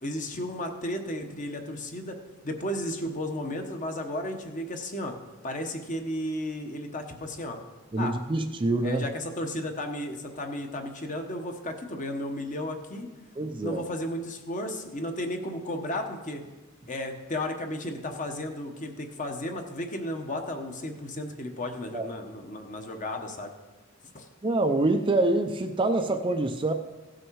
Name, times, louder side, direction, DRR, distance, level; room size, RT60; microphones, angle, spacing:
voice 1, 0.0-2.2 2.4-5.1 5.4-7.6 8.0-8.2 8.8-13.1 13.6-16.4 16.9-23.5 24.1-24.3, left 1 dB, 35° left, 4 dB, 1.1 m, -34 dB
voice 2, 7.9-9.0 13.4-13.9 21.9-22.0 24.4-26.7, right 2 dB, 25° right, 6 dB, 0.5 m, -25 dB
16.5 x 6.3 x 4.7 m, 1.2 s
head